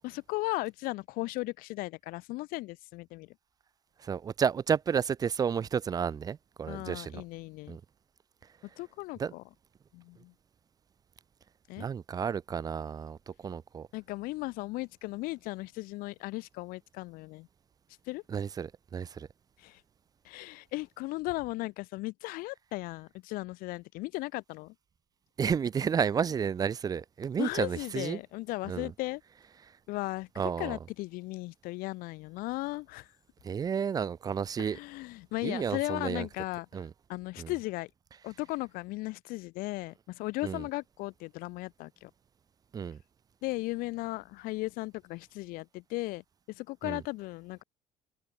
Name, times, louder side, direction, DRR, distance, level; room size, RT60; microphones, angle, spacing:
voice 1, 0.0-3.3 6.7-7.8 8.8-9.4 9.9-10.3 11.7-11.9 13.9-17.5 18.1-18.2 19.6-19.8 20.2-24.7 27.4-29.2 29.9-33.1 34.6-36.7 37.1-37.9 38.2-42.1 43.4-47.6, left 21 dB, 75° left, 3.1 m, -36 dB
voice 2, 4.0-7.2 7.7-7.8 9.2-9.3 11.8-13.9 18.3-19.3 25.4-28.2 28.7-28.9 30.4-30.8 33.4-34.8 35.4-36.3 36.7-36.9 37.4-37.5 40.4-40.6 42.7-43.0 46.8-47.0, right 7 dB, 25° right, 1.0 m, -31 dB
cardioid pair, 170°, 15 cm